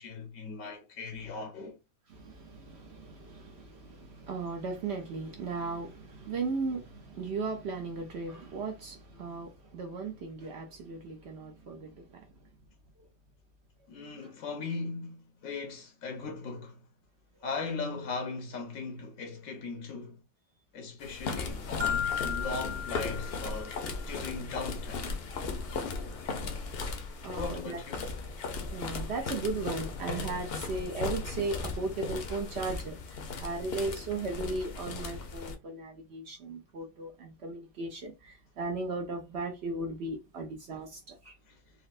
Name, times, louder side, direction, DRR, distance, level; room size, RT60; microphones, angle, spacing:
voice 1, 0.0-1.8 13.9-16.8 17.4-20.2 20.7-25.1 27.2-28.1 41.5-41.6, left 4 dB, 80° left, 1.1 m, -38 dB
voice 2, 2.1-12.3 14.2-14.3 26.6-27.8 28.7-41.3, right 3 dB, 60° right, 0.8 m, -37 dB
sound 1, 21.0-35.6, left 4 dB, 60° left, 0.7 m, -37 dB
Marimba xylophone, 21.8-24.0, left 8 dB, 80° right, 1.2 m, -34 dB
4.0 x 2.0 x 2.4 m
omnidirectional pair, 1.5 m